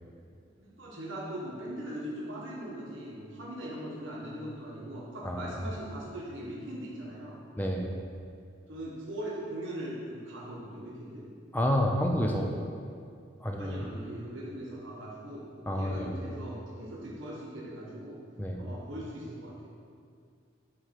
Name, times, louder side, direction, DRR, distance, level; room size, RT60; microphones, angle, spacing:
voice 1, 0.6-7.4 8.7-11.2 13.6-15.5 15.8-18.2 18.6-19.7, right 1 dB, 75° right, -5 dB, 1.4 m, -40 dB
voice 2, 7.6-7.9 11.5-12.5 13.4-13.8 15.7-16.2 18.4-18.6, equal, 10° left, 1 dB, 0.5 m, -29 dB
7.9 x 3.3 x 5.9 m, 2.3 s
head